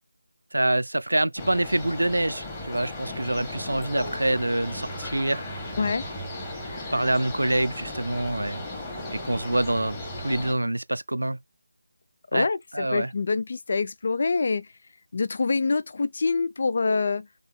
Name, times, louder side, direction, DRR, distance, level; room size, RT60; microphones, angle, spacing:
voice 1, 0.5-5.4 6.9-8.6 9.1-11.4 12.3-12.5 12.7-13.1, right 1 dB, 70° right, 0.5 m, -26 dB
sound 1, 1.4-10.5, left 1 dB, 10° left, 1.3 m, -36 dB
sound 2, 3.0-9.7, right 5 dB, 15° right, 0.8 m, -47 dB
voice 2, 5.8-6.1 12.3-14.7 15.1-17.3, left 4 dB, 40° left, 0.4 m, -25 dB
3.8 x 3.6 x 3.6 m
figure-of-eight pair, 160°, 0 cm